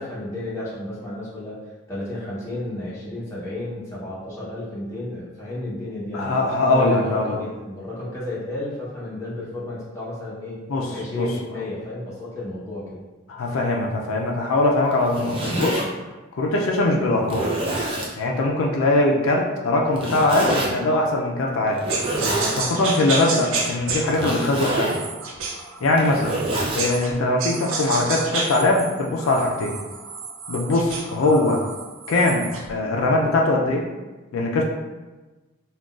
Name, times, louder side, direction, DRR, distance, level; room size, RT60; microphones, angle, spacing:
voice 1, 0.0-1.6 1.9-6.4 6.7-10.6 10.9-13.0 22.3-22.6, left 1 dB, 15° left, -9 dB, 0.8 m, -32 dB
voice 2, 6.1-7.4 10.7-11.3 13.3-15.9 16.4-17.5 18.2-21.8 22.5-24.9 25.8-26.4 26.8-29.7 30.5-31.6 32.1-33.9 34.3-34.6, left 2 dB, 80° left, 0 dB, 0.4 m, -21 dB
Zipper (clothing), 14.9-15.8 16.6-16.7 17.2-18.1 19.9-20.7 21.7-22.6 24.1-25.0 25.8-26.9, right 2 dB, 25° right, 0.5 m, -26 dB
sound 1, 21.9-27.1 27.4-32.7, right 4 dB, 80° right, 0.5 m, -30 dB
3.7 x 2.3 x 2.3 m, 1.2 s
head